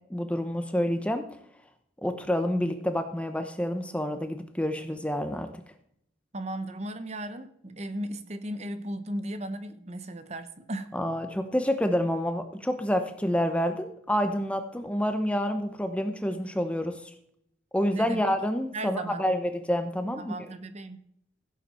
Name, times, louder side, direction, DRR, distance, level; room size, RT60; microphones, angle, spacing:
voice 1, 0.1-1.2 2.0-5.5 10.9-16.9 17.7-20.3, equal, 5° left, 7 dB, 0.9 m, -28 dB
voice 2, 6.3-10.9 17.9-18.3 18.7-19.2 20.1-21.0, right 1 dB, 35° right, 10 dB, 0.9 m, -36 dB
16.0 x 8.0 x 4.4 m, 0.72 s
head